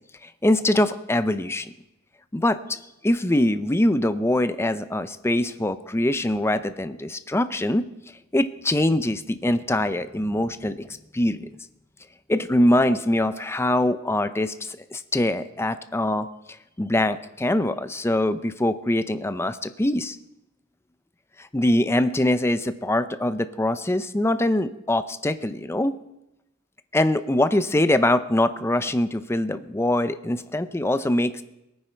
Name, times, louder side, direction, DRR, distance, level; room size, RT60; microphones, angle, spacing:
voice 1, 0.2-1.7 2.3-7.9 8.3-11.5 12.3-20.2 21.4-26.0 26.9-31.4, left 1 dB, 10° left, 11 dB, 0.5 m, -23 dB
22.0 x 9.7 x 4.5 m, 0.92 s
head